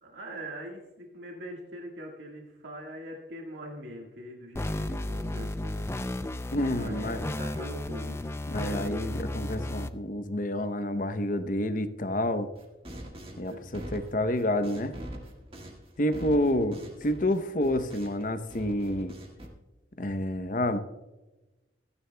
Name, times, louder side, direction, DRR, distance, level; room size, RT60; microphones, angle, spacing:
voice 1, 0.0-5.8 6.8-8.2 13.1-13.9, right 1 dB, 75° right, -1 dB, 1.6 m, -42 dB
sound 1, 4.6-9.9, left 1 dB, 15° left, 0.4 m, -33 dB
voice 2, 6.5-7.2 8.5-12.5 13.4-15.0 16.0-19.1 20.0-20.8, left 1 dB, 45° left, 10 dB, 0.7 m, -29 dB
sound 2, 12.5-18.2 18.5-19.5, equal, 30° right, 1.7 m, -43 dB
27.0 x 9.8 x 2.2 m, 1.1 s
head